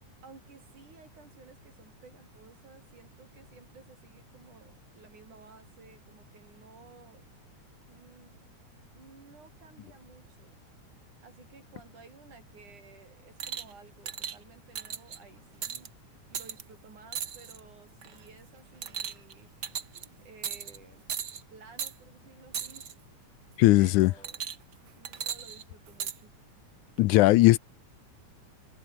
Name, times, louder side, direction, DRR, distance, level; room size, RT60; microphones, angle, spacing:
voice 1, 0.2-7.2 7.9-8.4 8.9-10.6 11.2-15.9 16.3-19.5 20.2-21.1 21.5-22.9 23.7-24.4 25.0-26.3, right 4 dB, 80° right, 6.9 m, -55 dB
sound 1, 13.4-13.7 14.1-14.4 14.7-15.2 15.6-15.9 16.3-16.6 17.1-17.6 18.0-18.3 18.8-19.3 19.6-20.0 20.4-20.8 21.1-21.4 21.8-21.9 22.5-22.9 24.2-24.7 25.0-26.2 27.0-27.1, right 8 dB, 45° right, 1.4 m, -36 dB
voice 2, 23.6-24.1 27.0-27.6, left 18 dB, 80° left, 2.1 m, -19 dB
omnidirectional pair, 3.5 m